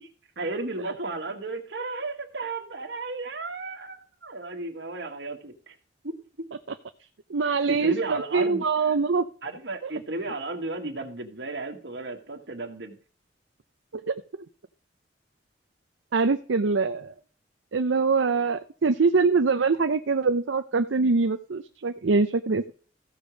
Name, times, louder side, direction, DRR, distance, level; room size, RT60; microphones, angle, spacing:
voice 1, 0.4-5.7 6.0-6.2 7.4-9.0 9.4-13.0, right 2 dB, 65° right, 3 dB, 1.6 m, -34 dB
voice 2, 7.3-9.3 9.8-9.9 14.1-14.2 16.1-17.1 17.7-22.7, right 4 dB, 85° right, 9 dB, 0.6 m, -23 dB
15.0 x 5.0 x 6.2 m, 0.43 s
head